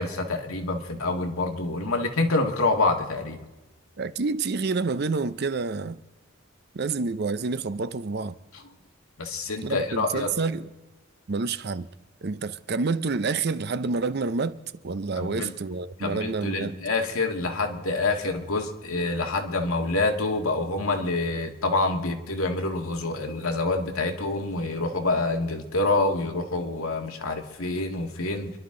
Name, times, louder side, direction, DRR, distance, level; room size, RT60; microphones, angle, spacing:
voice 1, 0.0-3.4 9.2-10.3 15.2-15.5 16.0-28.5, left 2 dB, 80° left, 1.9 m, -27 dB
voice 2, 4.0-6.0 6.7-8.3 9.6-10.7 11.3-11.9 12.2-14.6 14.8-16.7, right 4 dB, 50° right, 0.6 m, -28 dB
28.0 x 11.5 x 3.8 m
head